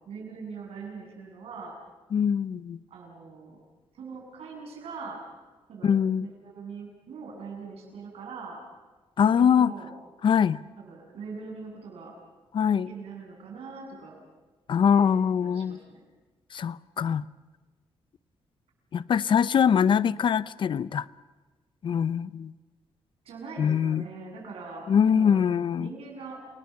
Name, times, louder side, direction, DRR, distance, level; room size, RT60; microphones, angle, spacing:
voice 1, 0.0-1.8 2.9-3.6 3.9-5.2 5.7-8.6 9.3-9.9 10.8-12.1 12.8-14.2 14.9-16.0 19.6-20.0 23.2-25.5 25.8-26.4, right 4 dB, 80° right, 7.8 m, -42 dB
voice 2, 2.1-2.8 5.8-6.3 9.2-9.7 10.2-10.6 12.5-12.9 14.7-15.8 16.5-17.2 18.9-21.0 21.8-22.5 23.6-24.0 24.9-25.9, left 7 dB, 55° left, 0.7 m, -23 dB
29.5 x 19.5 x 7.2 m
cardioid pair, 120°, 10 cm